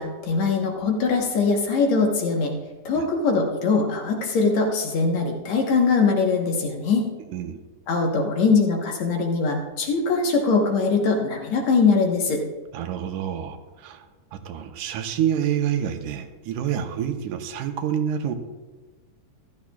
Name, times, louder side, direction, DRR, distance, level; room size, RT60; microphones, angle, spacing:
voice 1, 0.0-2.5 2.9-7.1 7.9-12.4, left 4 dB, 65° left, 1 dB, 2.3 m, -22 dB
voice 2, 12.7-14.1 14.3-18.3, right 9 dB, 80° right, 7 dB, 2.1 m, -27 dB
14.5 x 12.5 x 2.3 m, 1.2 s
omnidirectional pair, 3.7 m